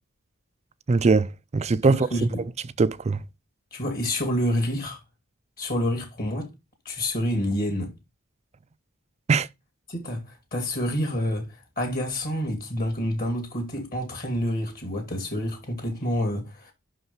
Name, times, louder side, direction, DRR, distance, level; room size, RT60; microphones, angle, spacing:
voice 1, 0.9-2.3 2.8-3.2 9.3-9.5, right 4 dB, 30° right, 0.4 m, -21 dB
voice 2, 1.9-2.4 3.7-5.0 5.6-6.5 6.8-7.9 9.9-10.2 10.5-11.5 11.8-16.7, equal, 45° left, 2.5 m, -28 dB
6.0 x 5.6 x 5.5 m
head